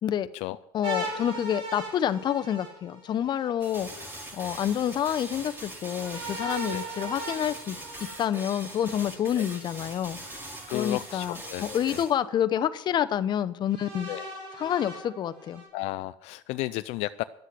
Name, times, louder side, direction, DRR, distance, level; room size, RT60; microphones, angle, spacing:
voice 1, 0.7-4.1 4.3-7.8 8.2-10.4 10.7-14.1 14.6-15.6, left 10 dB, 40° left, 12 dB, 0.7 m, -28 dB
sound 1, 0.8-3.5 5.9-8.9 10.2-11.2 11.9-12.0 13.7-15.7, right 1 dB, 85° right, 5.5 m, -38 dB
sound 2, 3.6-12.1, right 1 dB, 20° right, 4.4 m, -42 dB
voice 2, 3.8-4.1 4.4-4.5 6.7-6.9 9.3-9.4 10.7-12.0 14.1-14.3 15.7-17.2, left 18 dB, 70° left, 13 dB, 0.4 m, -34 dB
11.5 x 8.3 x 7.6 m, 0.84 s
supercardioid pair, 110°, 11 cm